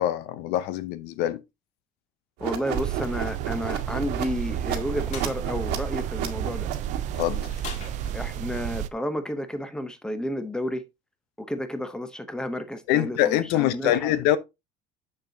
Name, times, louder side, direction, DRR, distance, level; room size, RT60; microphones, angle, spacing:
voice 1, 0.0-1.4 7.2-7.6 12.9-14.4, left 12 dB, 70° left, 0.7 m, -24 dB
voice 2, 2.4-6.7 8.1-10.8 11.4-14.1, equal, 5° left, 0.7 m, -31 dB
sound 1, 2.4-7.7, right 9 dB, 70° right, 1.4 m, -33 dB
sound 2, 2.7-8.9, right 11 dB, 45° right, 0.4 m, -32 dB
sound 3, 5.1-5.3 7.6-8.6, left 5 dB, 45° left, 1.9 m, -40 dB
6.7 x 6.5 x 2.7 m
cardioid pair, 165°, 17 cm